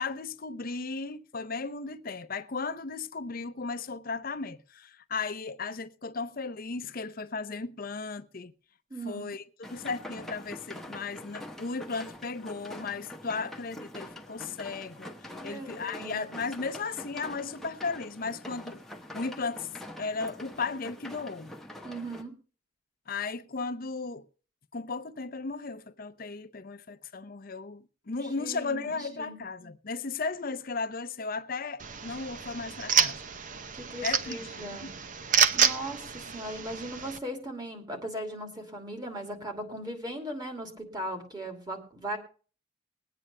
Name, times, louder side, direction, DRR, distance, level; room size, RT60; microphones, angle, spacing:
voice 1, 0.0-8.5 9.0-18.8 19.1-19.7 20.0-21.5 23.1-24.3 24.7-33.2 34.0-34.9, left 4 dB, 45° left, 0.7 m, -35 dB
voice 2, 8.9-9.3 15.4-16.3 21.8-22.3 28.1-28.9 29.2-29.4 33.7-34.9 35.5-42.2, right 1 dB, 20° right, 2.8 m, -38 dB
sound 1, 9.6-22.2, left 1 dB, ahead, 1.1 m, -44 dB
sound 2, 31.8-37.2, right 7 dB, 40° right, 0.8 m, -29 dB
21.0 x 8.8 x 3.3 m
head